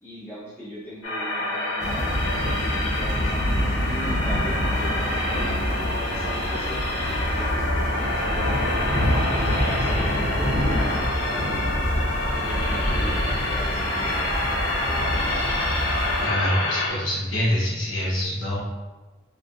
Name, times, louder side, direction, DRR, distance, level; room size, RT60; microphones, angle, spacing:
voice 1, 0.0-2.6 2.9-5.6 6.0-8.6 9.1-10.6 10.9-11.4 12.4-14.1, equal, 10° left, -11 dB, 1.3 m, -39 dB
sound 1, 1.0-16.9, left 1 dB, 90° left, 1.1 m, -27 dB
Thunder / Rain, 1.8-16.3, equal, 35° left, 1.1 m, -27 dB
voice 2, 16.2-18.6, left 1 dB, 65° left, -6 dB, 1.0 m, -25 dB
3.6 x 3.0 x 2.5 m, 1.2 s
head